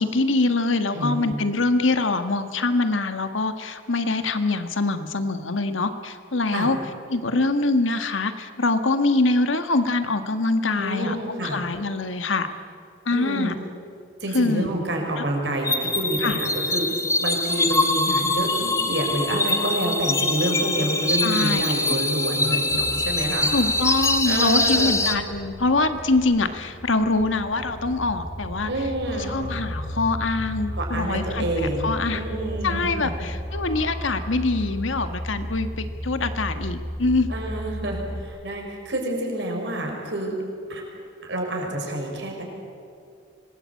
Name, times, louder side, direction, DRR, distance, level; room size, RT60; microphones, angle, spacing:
voice 1, 0.0-6.8 7.1-11.2 11.4-12.5 13.1-13.6 14.3-14.7 15.2-15.3 16.2-16.4 21.2-21.7 23.5-28.7 29.1-32.3 32.6-37.3, left 3 dB, 85° left, 8 dB, 1.7 m, -24 dB
voice 2, 0.9-1.3 6.5-6.7 10.7-11.6 13.1-13.5 14.2-16.9 17.2-23.5 24.3-25.0 28.6-29.3 30.7-33.1 37.3-40.4 40.7-40.8 41.3-42.4, right 1 dB, 65° right, 1 dB, 5.9 m, -28 dB
sound 1, 15.6-25.2, left 2 dB, 15° left, 1.4 m, -24 dB
sound 2, 22.7-38.2, equal, 35° right, 3.9 m, -34 dB
25.5 x 20.0 x 8.6 m, 2.4 s
head